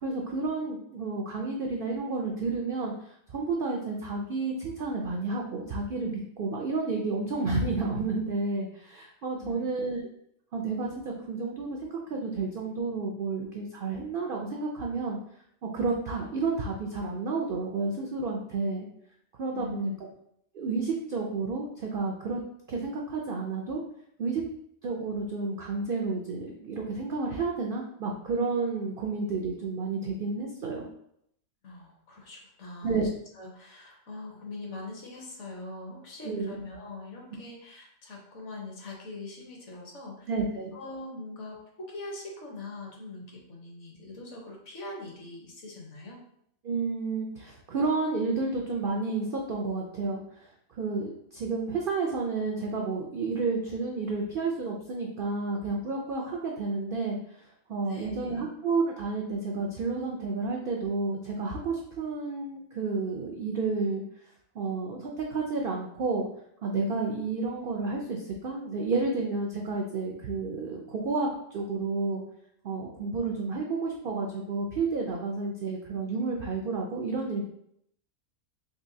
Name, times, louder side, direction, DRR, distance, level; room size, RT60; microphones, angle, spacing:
voice 1, 0.0-2.9 3.3-10.0 10.5-15.2 15.7-18.9 19.4-19.9 20.5-22.4 22.7-23.8 24.2-24.4 24.8-30.9 32.8-33.1 36.2-36.6 40.3-40.7 46.6-50.5 50.7-64.0 64.5-66.3 66.6-71.3 71.5-72.2 72.6-77.5, right 3 dB, 75° right, 0 dB, 0.5 m, -31 dB
voice 2, 9.4-9.9 19.5-20.0 31.6-33.0 33.3-40.3 40.7-46.2 57.8-58.5, left 2 dB, 60° left, -1 dB, 1.2 m, -42 dB
3.9 x 3.0 x 2.6 m, 0.71 s
omnidirectional pair, 1.5 m